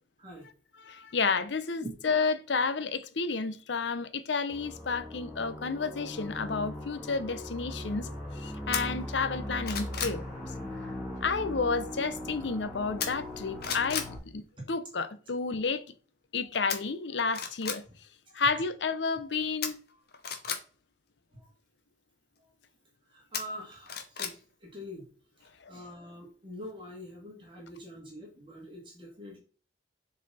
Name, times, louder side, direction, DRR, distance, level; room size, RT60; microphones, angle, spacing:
voice 1, 0.8-8.1 8.4-10.2 11.2-14.0 14.3-14.4 14.7-15.8 16.3-17.8 18.3-19.8, left 4 dB, 75° left, 0.7 m, -31 dB
sound 1, 4.5-14.2, left 1 dB, 5° right, 2.8 m, -39 dB
sound 2, 8.7-8.8 9.3-10.2 13.0-13.3 13.6-14.1 16.7-16.8 17.3-17.8 19.6-20.6 23.3-24.3 24.7-24.8, left 7 dB, 55° left, 1.1 m, -34 dB
voice 2, 23.1-25.1 25.7-29.4, equal, 30° right, 2.1 m, -44 dB
7.3 x 4.1 x 4.2 m
head